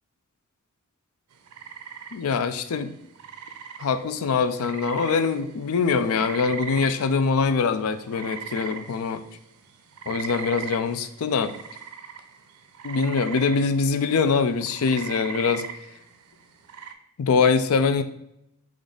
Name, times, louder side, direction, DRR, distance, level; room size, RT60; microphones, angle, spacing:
sound 1, 1.3-16.9, right 7 dB, 90° right, 0.5 m, -40 dB
voice 1, 2.1-2.9 3.8-9.2 10.1-11.5 12.8-15.6 17.2-18.0, left 5 dB, 70° left, 10 dB, 0.4 m, -23 dB
5.1 x 2.5 x 3.8 m, 0.81 s
head